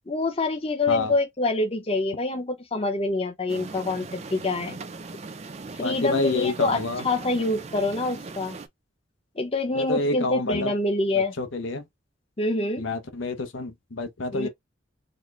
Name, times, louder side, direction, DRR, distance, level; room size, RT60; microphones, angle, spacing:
voice 1, 0.1-4.8 5.8-8.6 9.4-11.3 12.4-12.8 14.3-14.5, left 2 dB, 30° left, 0.7 m, -26 dB
sound 1, 3.5-8.7, right 3 dB, 35° right, 0.4 m, -39 dB
voice 2, 5.8-7.0 9.8-10.7 11.4-11.8 12.8-14.5, left 3 dB, 80° left, 0.8 m, -28 dB
4.2 x 2.1 x 3.2 m
head